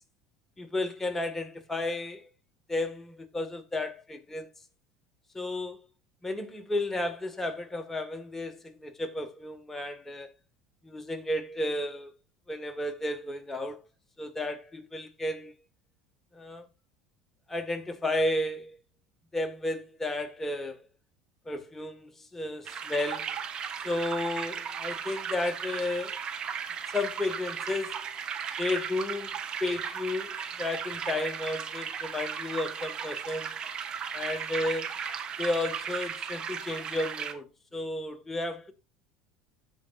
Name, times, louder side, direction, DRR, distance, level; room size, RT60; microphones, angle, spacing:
voice 1, 0.6-2.3 2.7-4.5 5.3-5.8 6.2-10.3 10.8-12.1 12.5-13.8 14.2-15.5 16.3-16.7 17.5-18.8 19.3-20.8 21.5-23.4 23.8-26.2 26.9-28.0 28.6-33.6 34.1-34.9 35.4-38.7, left 2 dB, 15° left, 1.9 m, -33 dB
sound 1, 22.6-37.3, right 7 dB, 40° right, 1.4 m, -36 dB
16.0 x 5.4 x 2.6 m
hypercardioid pair, 85°, 2 cm